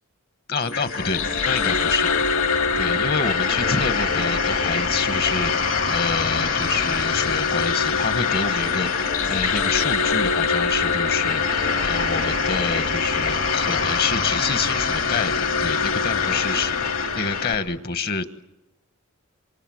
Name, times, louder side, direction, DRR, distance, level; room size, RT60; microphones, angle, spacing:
voice 1, 0.5-2.1 2.8-16.8 17.1-18.3, left 4 dB, 45° left, 11 dB, 1.3 m, -28 dB
sound 1, 0.6-17.6, left 5 dB, 65° left, 2.7 m, -23 dB
27.5 x 25.5 x 7.8 m, 0.90 s
head